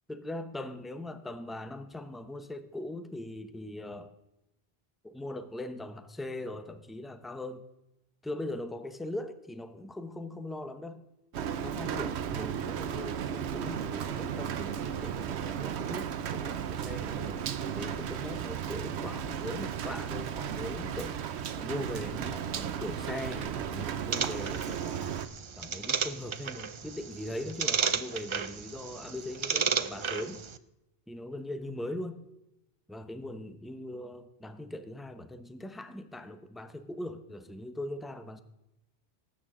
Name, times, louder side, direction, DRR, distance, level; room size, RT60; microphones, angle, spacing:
voice 1, 0.1-4.1 5.0-7.6 8.2-11.0 11.5-17.5 17.8-21.2 21.5-25.2 25.6-30.4 31.1-32.2 32.9-38.4, left 1 dB, ahead, 0.6 m, -40 dB
Rain, 11.3-25.3, right 8 dB, 85° right, 1.0 m, -35 dB
Wind instrument woodwind instrument, 14.2-19.1, right 7 dB, 25° right, 1.7 m, -56 dB
sound 1, 24.1-30.6, right 6 dB, 45° right, 0.4 m, -33 dB
19.0 x 8.9 x 3.7 m
omnidirectional pair, 1.1 m